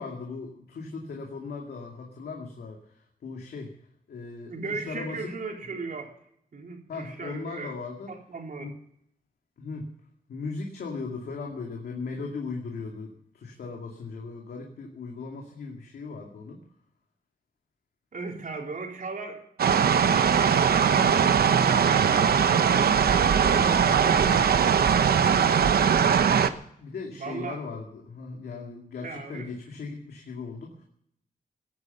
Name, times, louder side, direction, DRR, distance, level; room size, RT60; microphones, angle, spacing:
voice 1, 0.0-3.7 4.1-5.3 6.9-8.1 8.6-8.8 9.6-9.9 10.3-16.6 22.1-22.4 23.5-24.9 26.8-30.8, left 4 dB, 90° left, 1 dB, 2.4 m, -38 dB
voice 2, 4.5-6.1 6.5-7.7 8.1-8.7 18.1-19.4 20.1-21.2 21.6-22.7 27.1-27.6 29.0-29.5, right 4 dB, 60° right, 1 dB, 3.8 m, -37 dB
sound 1, 19.6-26.5, right 7 dB, 75° right, 0.9 m, -21 dB
16.5 x 9.8 x 7.0 m, 0.70 s
cardioid pair, 85°, 16 cm